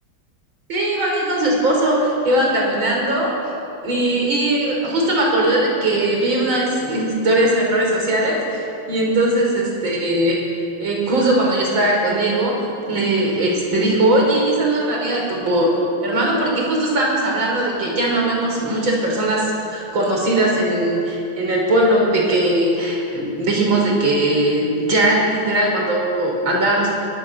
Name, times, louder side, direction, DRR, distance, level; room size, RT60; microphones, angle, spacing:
voice 1, 0.7-3.3 3.8-10.4 10.8-12.6 12.9-15.7 16.0-26.9, right 1 dB, 65° right, -2 dB, 6.1 m, -19 dB
24.0 x 23.0 x 7.0 m, 2.7 s
omnidirectional pair, 2.3 m